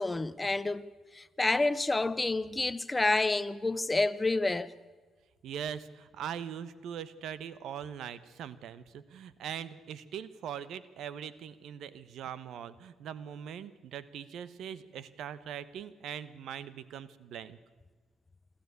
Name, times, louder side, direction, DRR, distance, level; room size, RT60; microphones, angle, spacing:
voice 1, 0.0-4.7, left 2 dB, 20° left, 0.7 m, -29 dB
voice 2, 5.4-17.6, right 9 dB, 75° right, 1.0 m, -41 dB
26.5 x 13.0 x 8.3 m
cardioid pair, 90°, 0 cm